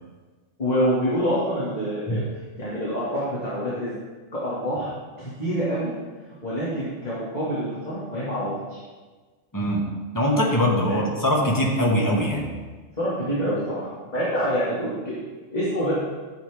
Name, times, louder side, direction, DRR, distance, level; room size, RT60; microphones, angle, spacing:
voice 1, 0.6-2.2 2.6-3.9 4.3-5.9 6.4-8.8 10.9-11.1 13.0-15.2 15.5-15.9, equal, 30° left, -9 dB, 2.3 m, -26 dB
voice 2, 9.5-9.9 10.1-12.5, equal, 15° left, -2 dB, 1.5 m, -22 dB
11.5 x 7.5 x 3.5 m, 1.4 s
omnidirectional pair, 1.4 m